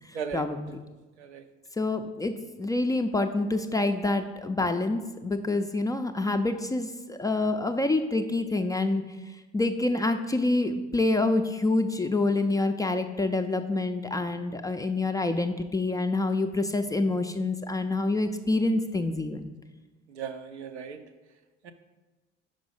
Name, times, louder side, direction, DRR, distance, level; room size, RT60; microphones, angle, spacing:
voice 1, 0.1-0.8 1.8-9.0 9.5-19.5, left 2 dB, 10° left, 6 dB, 0.3 m, -27 dB
voice 2, 20.1-21.0 21.6-21.7, right 7 dB, 80° right, 8 dB, 0.5 m, -36 dB
5.3 x 5.3 x 5.0 m, 1.2 s
figure-of-eight pair, 55°, 33 cm